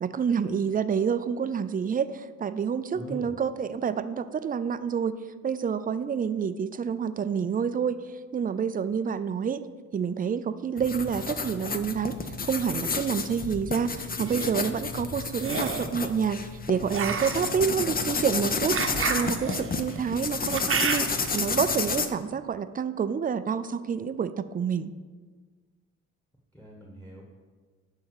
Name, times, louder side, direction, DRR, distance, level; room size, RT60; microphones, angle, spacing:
voice 1, 0.0-5.1 5.4-8.0 8.3-9.6 9.9-12.2 12.4-16.4 16.7-24.9, right 7 dB, 30° right, 12 dB, 0.5 m, -28 dB
voice 2, 2.9-3.3 17.4-17.7 26.5-27.2, right 1 dB, 5° left, -1 dB, 1.4 m, -42 dB
sound 1, 10.8-22.1, left 4 dB, 30° left, 0.7 m, -31 dB
sound 2, 14.0-14.5 15.4-15.9 16.9-21.3, right 6 dB, 45° right, 1.0 m, -31 dB
11.5 x 3.8 x 6.6 m, 1.5 s
cardioid pair, 90°, 30 cm